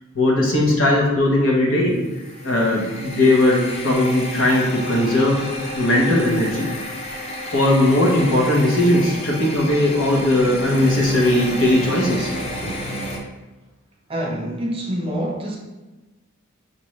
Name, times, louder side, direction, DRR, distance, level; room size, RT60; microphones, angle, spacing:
voice 1, 0.1-1.9 2.4-5.4 5.7-6.7 7.5-12.3 12.6-12.7, left 1 dB, 65° left, -2 dB, 1.0 m, -18 dB
sound 1, 1.9-13.2, equal, 25° left, 0.5 m, -31 dB
voice 2, 14.1-15.6, right 1 dB, 25° right, -2 dB, 0.6 m, -26 dB
5.5 x 2.6 x 3.1 m, 1.2 s
head